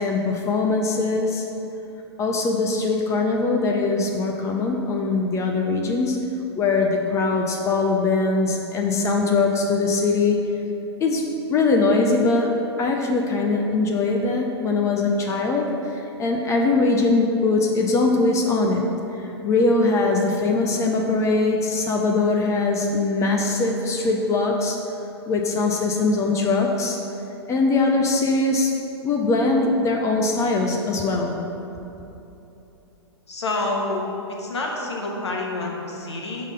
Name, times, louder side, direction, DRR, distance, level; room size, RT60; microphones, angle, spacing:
voice 1, 0.0-1.5 2.2-6.3 6.5-10.4 11.0-11.2 11.5-18.8 19.2-24.8 25.3-27.0 27.5-28.8 29.0-31.4, left 3 dB, 20° left, 1 dB, 0.5 m, -21 dB
voice 2, 33.3-34.0 34.3-36.5, left 2 dB, 80° left, -2 dB, 1.2 m, -28 dB
6.3 x 3.7 x 5.2 m, 3.0 s
figure-of-eight pair, 110°, 14 cm